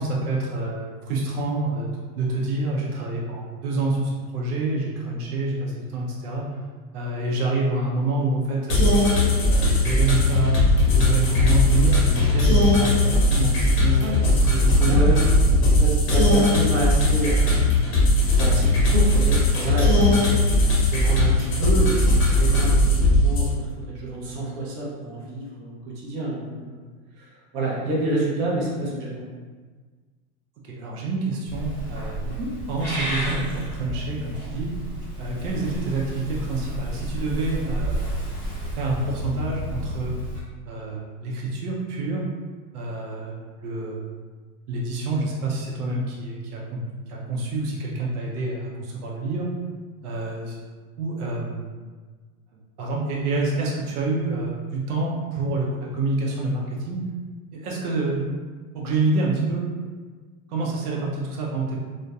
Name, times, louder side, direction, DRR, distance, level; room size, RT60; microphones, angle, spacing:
voice 1, 0.0-1.9 2.2-6.4 6.9-8.9 9.5-15.0 30.6-32.2 32.7-34.7 35.2-38.1 38.7-40.2 40.7-42.2 42.7-44.0 44.7-46.8 47.1-49.5 50.0-50.6 51.0-51.6 52.8-57.0 57.5-58.4 58.7-59.6 60.5-61.8, right 2 dB, 75° right, -2 dB, 0.6 m, -27 dB
sound 1, 8.7-23.5, left 1 dB, 30° left, 0.7 m, -19 dB
voice 2, 13.8-14.2 14.7-15.3 15.6-17.5 18.4-20.4 20.7-26.8 27.2-29.3 32.2-32.5, right 1 dB, 35° right, -5 dB, 0.7 m, -28 dB
Purr / Meow, 31.5-40.4, equal, 5° left, 1.4 m, -31 dB
2.5 x 2.2 x 2.3 m, 1.5 s
supercardioid pair, 125°, 45 cm